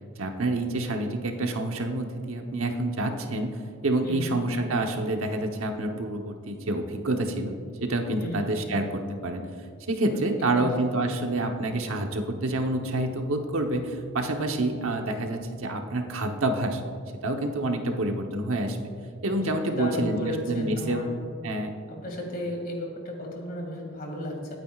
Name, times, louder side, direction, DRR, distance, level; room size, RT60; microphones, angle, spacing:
voice 1, 0.2-9.5 9.9-16.8 17.2-18.8 19.2-21.1 21.4-21.8, right 2 dB, 75° right, 4 dB, 1.0 m, -28 dB
voice 2, 4.0-4.4 8.2-8.4 10.0-10.7 19.3-21.1 22.0-24.5, left 1 dB, 40° left, 0 dB, 2.2 m, -34 dB
21.5 x 9.0 x 2.4 m, 2.3 s
head